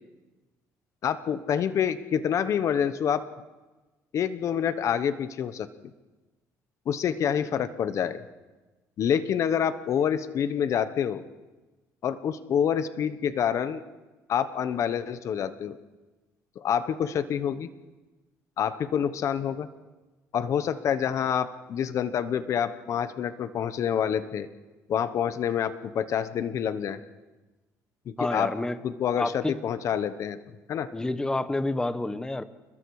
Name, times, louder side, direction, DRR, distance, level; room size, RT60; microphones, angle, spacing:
voice 1, 1.0-3.2 4.1-5.7 6.9-8.2 9.0-11.2 12.0-13.8 14.3-15.8 16.6-17.7 18.6-19.7 20.3-24.5 24.9-27.0 28.3-28.5 28.8-30.4 30.7-30.9, left 8 dB, 55° left, 12 dB, 1.0 m, -27 dB
voice 2, 28.2-28.8 29.2-29.6 30.9-32.4, left 2 dB, 10° left, 12 dB, 1.0 m, -29 dB
29.0 x 21.5 x 4.8 m, 1.2 s
cardioid pair, 125°, 6 cm